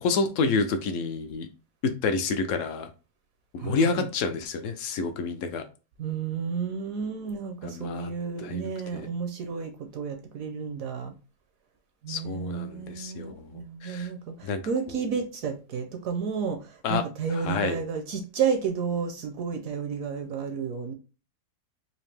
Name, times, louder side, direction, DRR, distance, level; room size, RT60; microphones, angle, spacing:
voice 1, 0.0-1.5 1.8-2.9 3.5-5.6 7.6-8.1 8.4-9.1 12.1-14.1 14.4-14.6 16.8-17.0 17.3-17.8, left 4 dB, 70° left, 7 dB, 0.7 m, -29 dB
voice 2, 3.6-4.1 6.0-11.1 12.0-20.9, right 6 dB, 70° right, 5 dB, 0.9 m, -31 dB
4.2 x 2.6 x 3.2 m, 0.33 s
omnidirectional pair, 1.8 m